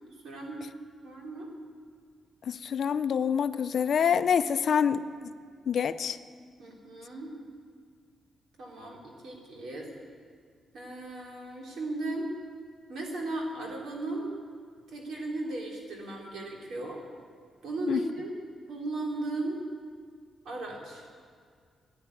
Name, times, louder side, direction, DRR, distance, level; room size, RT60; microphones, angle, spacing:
voice 1, 0.2-0.6 1.0-1.5 6.6-7.3 8.6-9.9 10.7-12.3 12.9-14.4 14.9-17.0 17.6-18.3 18.7-19.6 20.5-21.1, right 2 dB, 75° right, -1 dB, 3.6 m, -36 dB
voice 2, 2.5-5.3 5.7-6.2 17.9-18.0, left 7 dB, 55° left, 12 dB, 0.5 m, -26 dB
14.5 x 9.7 x 9.7 m, 2.1 s
wide cardioid pair, 155°, 0 cm